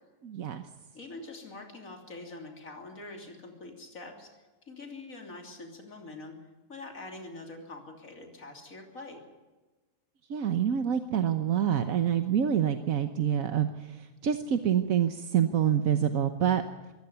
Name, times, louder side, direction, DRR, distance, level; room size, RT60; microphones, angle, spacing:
voice 1, 0.2-0.7 10.3-16.6, right 9 dB, 75° right, 8 dB, 1.5 m, -27 dB
voice 2, 0.9-4.4 4.6-6.4 6.7-9.2, left 2 dB, 75° left, 3 dB, 3.5 m, -44 dB
23.0 x 16.5 x 7.0 m, 1.2 s
omnidirectional pair, 1.5 m